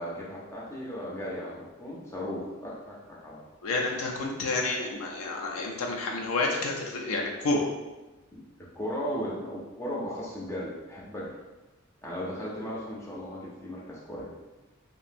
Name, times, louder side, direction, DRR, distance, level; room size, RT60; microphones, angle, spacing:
voice 1, 0.0-3.0 3.2-3.4 8.3-8.4 8.7-11.3 12.0-14.3, equal, 15° left, -5 dB, 0.5 m, -36 dB
voice 2, 3.6-7.6, left 2 dB, 75° left, 0 dB, 0.4 m, -29 dB
2.9 x 2.5 x 2.5 m, 1.1 s
head